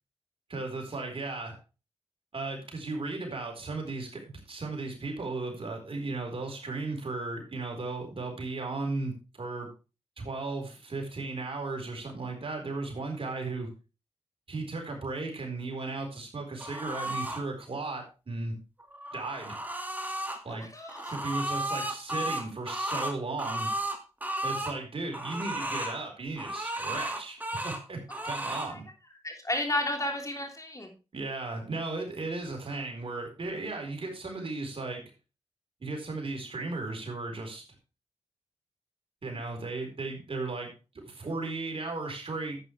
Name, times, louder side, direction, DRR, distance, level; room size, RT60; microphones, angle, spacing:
voice 1, 0.5-1.6 2.3-4.2 4.5-9.7 10.2-13.7 14.5-18.5 19.1-19.6 20.4-20.7 21.1-23.7 24.4-27.4 27.6-28.8 31.1-35.0 35.8-37.6 39.2-42.6, right 3 dB, 55° right, 2 dB, 4.3 m, -35 dB
sound 1, 16.6-17.4 18.8-20.4 20.9-24.8 25.1-26.0 26.4-27.8 28.1-28.7, right 1 dB, 15° right, 2.2 m, -34 dB
voice 2, 20.5-21.0 29.2-30.9, left 1 dB, 30° left, 3 dB, 3.3 m, -32 dB
11.0 x 8.9 x 3.3 m, 0.30 s
cardioid pair, 45°, 11 cm